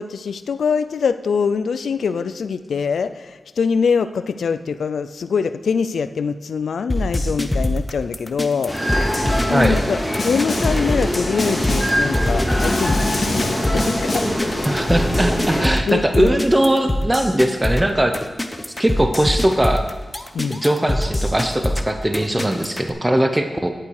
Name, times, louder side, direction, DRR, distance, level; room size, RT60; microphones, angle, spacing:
voice 1, 0.0-8.8 9.5-14.3 15.5-16.4 20.3-20.6, left 6 dB, 90° left, 12 dB, 0.5 m, -23 dB
sound 1, 6.9-22.9, left 1 dB, 20° left, 0.9 m, -24 dB
sound 2, 8.7-15.7, equal, 5° left, 2.5 m, -23 dB
Snare drum, 10.2-10.9 11.4-12.1 12.6-14.5, left 2 dB, 60° left, 1.8 m, -27 dB
voice 2, 14.7-18.1 18.8-19.8 20.6-23.7, right 1 dB, 15° right, 6 dB, 0.9 m, -19 dB
11.0 x 8.4 x 4.9 m, 1.4 s
cardioid pair, 60°, 0 cm